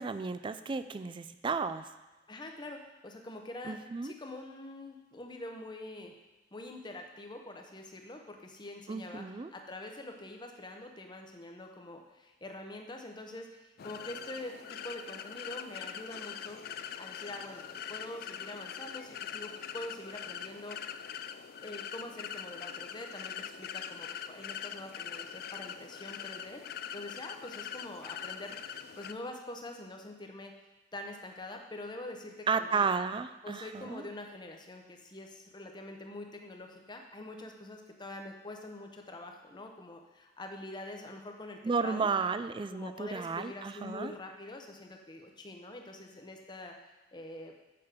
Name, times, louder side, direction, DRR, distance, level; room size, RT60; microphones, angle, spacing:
voice 1, 0.0-1.9 3.6-4.1 8.9-9.5 32.5-34.0 41.6-44.1, right 5 dB, 25° right, 12 dB, 0.3 m, -33 dB
voice 2, 2.3-6.1 6.5-16.6 17.0-21.0 21.6-26.7 26.9-30.5 30.9-32.9 33.4-42.1 42.7-46.7 47.1-47.5, left 1 dB, 25° left, 3 dB, 0.9 m, -45 dB
sound 1, 13.8-29.1, left 8 dB, 55° left, 0.3 m, -43 dB
6.8 x 5.2 x 6.6 m, 1.1 s
head